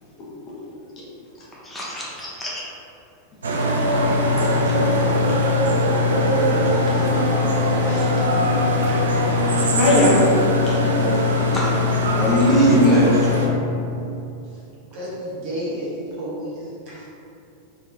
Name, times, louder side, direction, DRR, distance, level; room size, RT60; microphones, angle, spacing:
voice 1, 1.6-2.6 11.5-11.7 12.1-13.7, right 1 dB, 10° left, -7 dB, 1.1 m, -20 dB
sound 1, 3.4-13.5, left 2 dB, 70° right, 0.5 m, -20 dB
voice 2, 8.3-8.9 9.7-10.2 10.5-11.3, left 1 dB, 35° left, -7 dB, 1.2 m, -22 dB
voice 3, 14.9-17.1, equal, 45° right, -7 dB, 1.3 m, -31 dB
4.4 x 3.3 x 2.9 m, 2.7 s
figure-of-eight pair, 90°, 0 cm